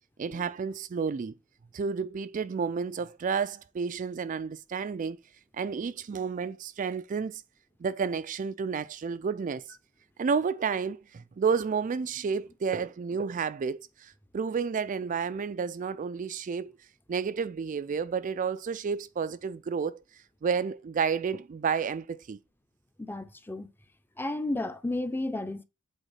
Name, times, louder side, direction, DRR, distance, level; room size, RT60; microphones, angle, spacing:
voice 1, 0.2-1.3 1.7-5.2 5.5-7.4 7.8-9.7 10.2-16.7 17.1-22.4, right 6 dB, 40° right, 0.3 m, -31 dB
voice 2, 23.0-23.7 24.2-25.6, left 2 dB, 10° left, 0.6 m, -33 dB
8.1 x 4.0 x 5.6 m
head